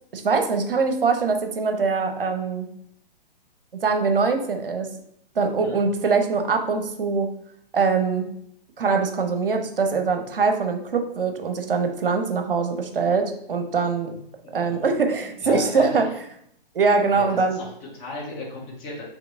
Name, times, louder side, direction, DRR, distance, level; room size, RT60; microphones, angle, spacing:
voice 1, 0.1-2.7 3.8-4.9 5.4-7.3 7.7-8.3 8.8-14.1 14.5-16.1 16.7-17.6, right 4 dB, 70° right, 5 dB, 0.6 m, -23 dB
voice 2, 15.1-16.1 17.1-19.0, left 2 dB, 20° left, -3 dB, 0.9 m, -35 dB
4.4 x 2.7 x 2.5 m, 0.71 s
figure-of-eight pair, 120°, 29 cm